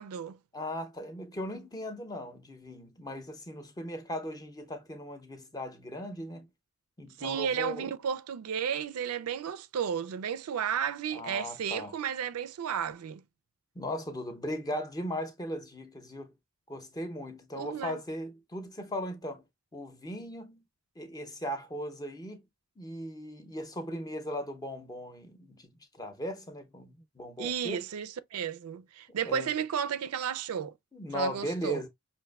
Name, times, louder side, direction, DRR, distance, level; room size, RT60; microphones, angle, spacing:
voice 1, 0.0-0.4 7.2-13.2 17.6-18.0 27.4-30.8 31.1-31.8, right 8 dB, 80° right, 0.4 m, -33 dB
voice 2, 0.5-6.5 7.0-7.9 11.1-11.9 13.7-16.3 16.7-19.4 19.7-20.6 21.0-22.4 22.8-27.8 29.2-29.5 30.9-31.9, equal, 15° left, 0.6 m, -38 dB
5.7 x 2.5 x 2.3 m
head